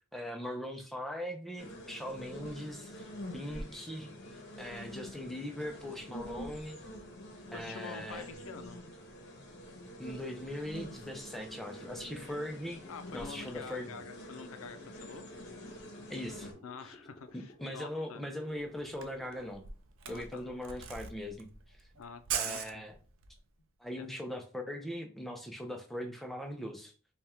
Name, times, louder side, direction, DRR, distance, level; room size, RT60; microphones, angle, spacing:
voice 1, 0.1-6.8 7.5-8.3 10.0-12.8 13.1-14.0 16.1-16.5 17.3-19.7 20.1-21.9 22.3-23.0 23.8-26.9, left 1 dB, ahead, 3 dB, 0.5 m, -40 dB
sound 1, 1.6-16.5, equal, 50° left, 0.9 m, -47 dB
voice 2, 7.5-8.8 12.9-15.2 16.6-18.2 20.0-20.6 21.9-22.8 24.0-24.1, left 5 dB, 80° left, 9 dB, 0.5 m, -47 dB
sound 2, 10.4-20.4, left 1 dB, 25° left, 1.0 m, -58 dB
Camera, 18.5-18.6 18.8-23.4, right 8 dB, 70° right, 0.5 m, -40 dB
3.5 x 2.3 x 4.2 m, 0.38 s
head